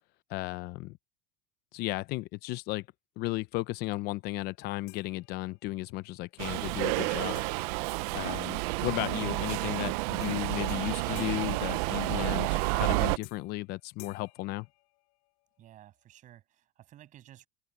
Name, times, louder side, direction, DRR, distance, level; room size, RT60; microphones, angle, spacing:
voice 1, 0.3-1.0 1.7-2.9 3.2-7.4 8.1-14.7, left 19 dB, 55° left, 0.7 m, -35 dB
sound 1, 4.9-5.9 7.3-8.9 10.2-10.4 10.7-12.5 13.2-13.6 14.0-15.4, left 29 dB, 75° left, 4.2 m, -55 dB
Subway metro underground, 6.4-13.2, right 22 dB, 80° right, 0.8 m, -30 dB
voice 2, 15.6-17.5, right 12 dB, 40° right, 7.1 m, -54 dB
cardioid pair, 150°, 19 cm